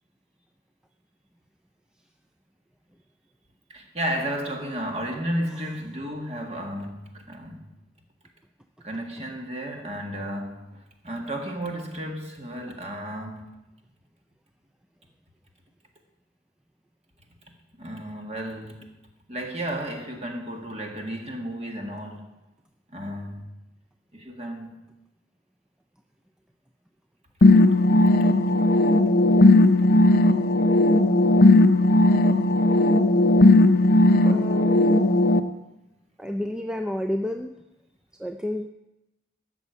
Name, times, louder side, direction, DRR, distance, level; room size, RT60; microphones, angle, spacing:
voice 1, 3.7-7.7 8.8-13.5 17.8-18.9 19.3-22.3 22.9-23.5 24.1-24.7, right 1 dB, 35° right, 1.8 m, -33 dB
sound 1, 27.4-35.4, left 2 dB, 50° left, 0.6 m, -17 dB
voice 2, 34.2-34.8 36.2-37.5 38.2-38.7, left 1 dB, 5° right, 0.4 m, -30 dB
14.0 x 6.3 x 8.1 m
head